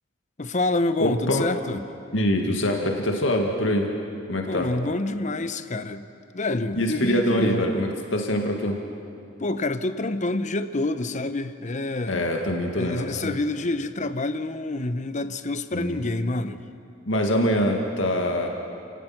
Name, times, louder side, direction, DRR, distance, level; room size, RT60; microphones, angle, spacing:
voice 1, 0.4-1.9 4.5-6.1 6.3-7.6 9.4-12.3 12.8-16.6, left 2 dB, 40° left, 11 dB, 0.8 m, -27 dB
voice 2, 1.0-1.5 2.1-3.9 4.3-4.7 6.8-8.8 12.1-13.3 15.7-16.0 17.1-18.5, equal, 80° left, 2 dB, 2.1 m, -24 dB
29.5 x 19.0 x 6.0 m, 2.5 s
head